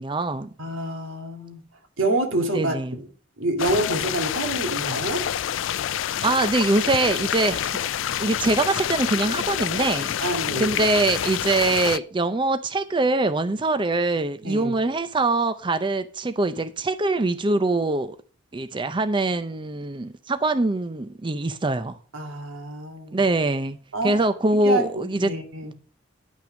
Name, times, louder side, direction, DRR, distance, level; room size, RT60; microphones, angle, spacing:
voice 1, 0.0-0.5 2.5-2.9 6.2-7.8 8.2-10.1 10.6-18.2 18.5-22.0 23.1-23.8 24.0-25.3, right 2 dB, 25° right, 0.5 m, -23 dB
voice 2, 0.6-1.6 2.0-3.1 3.4-5.3 10.2-10.7 14.4-14.7 22.1-23.2 23.9-24.1 24.5-25.7, right 2 dB, 90° right, 2.3 m, -27 dB
sound 1, 3.6-12.0, left 10 dB, 70° left, 0.4 m, -27 dB
10.5 x 5.9 x 6.2 m
head